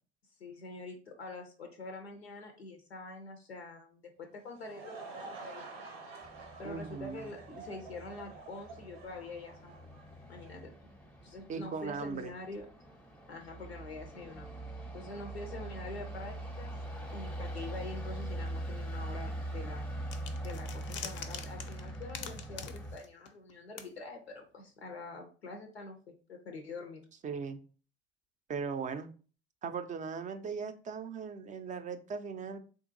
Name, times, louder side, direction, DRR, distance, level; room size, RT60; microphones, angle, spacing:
voice 1, 0.4-6.1 6.6-9.7 10.3-10.7 11.2-12.7 13.3-14.5 14.9-16.7 17.1-19.9 20.4-27.0, left 3 dB, 90° left, 4 dB, 0.5 m, -45 dB
Laughter / Crowd, 4.3-10.6, right 4 dB, 75° right, 0.7 m, -49 dB
sound 1, 6.2-23.0, right 1 dB, 5° left, 0.7 m, -42 dB
voice 2, 6.6-7.3 11.5-12.3 27.2-27.6 28.5-29.1 29.6-32.6, right 5 dB, 25° right, 9 dB, 0.4 m, -38 dB
sound 2, 20.1-23.5 23.8-23.9, left 8 dB, 40° left, 0.5 m, -44 dB
3.7 x 2.5 x 2.6 m, 0.38 s
figure-of-eight pair, 55°, 31 cm